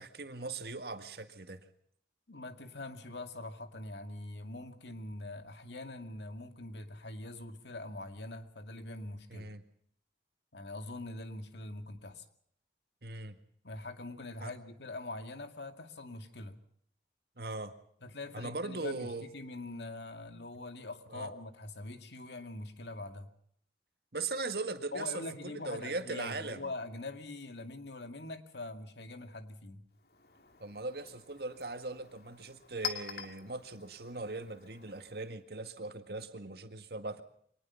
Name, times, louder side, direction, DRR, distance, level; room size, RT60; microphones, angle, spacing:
voice 1, 0.0-1.6 9.3-9.6 13.0-13.4 14.4-14.5 17.4-17.7 18.3-19.3 21.1-21.3 24.1-26.6 30.6-37.2, right 3 dB, 65° right, 8 dB, 1.9 m, -39 dB
voice 2, 2.3-9.5 10.5-12.2 13.6-16.6 18.0-23.3 24.9-29.9, left 2 dB, 80° left, 8 dB, 2.2 m, -43 dB
Chink clink, 29.9-35.4, left 8 dB, 65° left, 2.2 m, -46 dB
24.0 x 19.5 x 5.8 m, 0.65 s
head